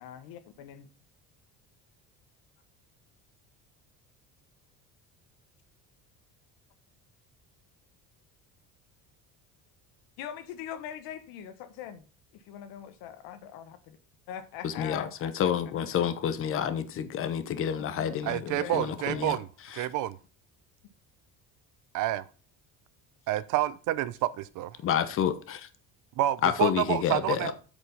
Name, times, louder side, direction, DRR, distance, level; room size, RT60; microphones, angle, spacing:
voice 1, 0.0-0.9 10.2-12.1 12.3-14.0 14.3-15.3 17.8-17.9 18.6-19.4, left 9 dB, 90° left, 1.4 m, -42 dB
voice 2, 14.6-19.4 19.6-19.9 24.8-25.7 26.4-27.5, left 9 dB, 35° left, 1.0 m, -29 dB
voice 3, 18.2-19.5 19.7-20.2 21.9-22.2 23.3-24.7 26.2-27.5, right 14 dB, 60° right, 0.7 m, -28 dB
8.3 x 5.3 x 5.6 m
cardioid pair, 170°, 35 cm